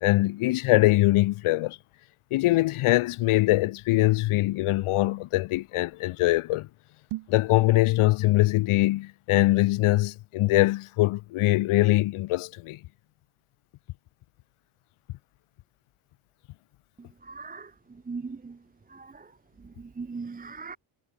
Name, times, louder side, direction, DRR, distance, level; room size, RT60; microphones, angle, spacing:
voice 1, 0.0-1.8 2.3-6.7 7.3-12.8, left 18 dB, 80° left, 0.6 m, -23 dB
sound 1, 7.0-7.5, right 17 dB, 80° right, 0.6 m, -37 dB
voice 2, 17.2-17.7 18.1-18.6 18.9-19.3 19.8-20.8, right 4 dB, 20° right, 0.7 m, -38 dB
wide cardioid pair, 140°, 50 cm